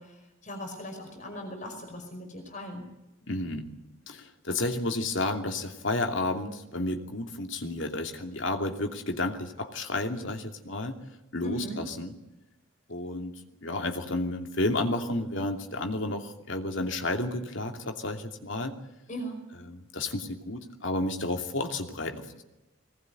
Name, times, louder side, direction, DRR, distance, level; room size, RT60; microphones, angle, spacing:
voice 1, 0.0-2.9 11.4-11.8 19.1-19.4, equal, 35° left, 4 dB, 5.2 m, -39 dB
voice 2, 3.3-3.7 4.1-11.0 11.3-12.1 12.9-18.8 19.7-22.4, left 2 dB, 65° left, 4 dB, 2.8 m, -31 dB
22.0 x 19.0 x 9.5 m, 0.96 s
head